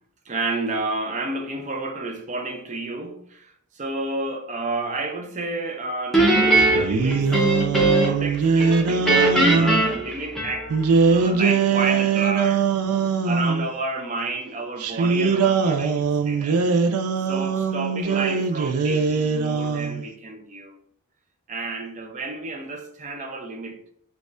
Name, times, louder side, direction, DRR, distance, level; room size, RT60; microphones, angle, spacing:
voice 1, 0.3-7.5 8.0-10.8 11.1-12.7 13.2-16.6 17.3-20.7 21.5-23.8, right 2 dB, 35° right, 0.5 m, -30 dB
Guitar, 6.1-8.3 8.6-10.9, right 2 dB, ahead, 0.6 m, -20 dB
sound 1, 6.6-9.8 10.7-13.7 14.8-20.0, right 5 dB, 90° right, 0.4 m, -22 dB
4.0 x 2.3 x 2.5 m
head